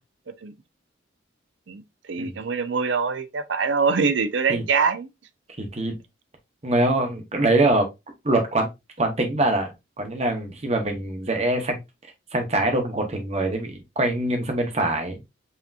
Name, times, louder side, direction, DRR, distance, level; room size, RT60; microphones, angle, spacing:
voice 1, 2.1-5.1, right 5 dB, 70° right, 0.5 m, -23 dB
voice 2, 5.6-6.0 6.6-7.9 8.2-8.7 9.0-11.8 12.3-15.2, right 2 dB, 35° right, 0.9 m, -23 dB
5.6 x 2.9 x 2.3 m
head